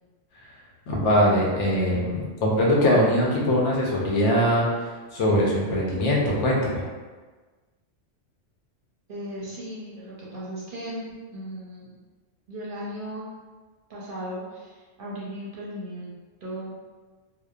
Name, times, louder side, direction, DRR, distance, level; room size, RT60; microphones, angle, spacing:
voice 1, 0.9-4.7 5.1-6.8, equal, 75° left, -4 dB, 1.0 m, -22 dB
voice 2, 9.1-11.9 12.5-13.3 13.9-16.1 16.4-16.7, equal, 55° right, -7 dB, 0.6 m, -36 dB
2.8 x 2.1 x 2.3 m, 1.4 s
omnidirectional pair, 1.2 m